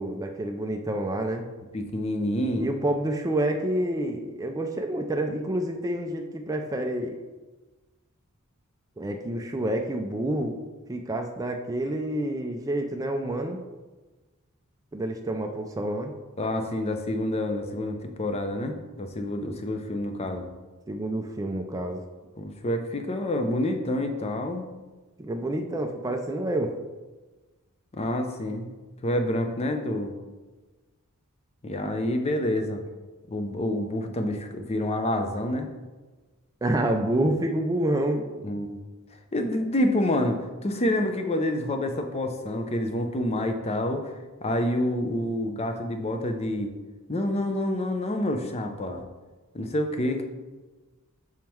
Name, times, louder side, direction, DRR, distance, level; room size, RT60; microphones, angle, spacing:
voice 1, 0.0-1.4 2.6-7.2 9.0-10.6 10.9-13.6 14.9-16.1 20.9-22.0 25.2-26.8 36.6-38.3, right 1 dB, 15° right, 3 dB, 0.3 m, -28 dB
voice 2, 1.7-2.7 16.4-20.5 22.4-24.6 27.9-28.7 29.0-30.1 31.6-32.8 33.3-35.7 38.4-38.8 39.3-44.1 44.4-46.7 47.1-49.0 49.5-50.2, left 1 dB, 30° left, 5 dB, 0.6 m, -28 dB
6.3 x 3.6 x 4.4 m, 1.2 s
head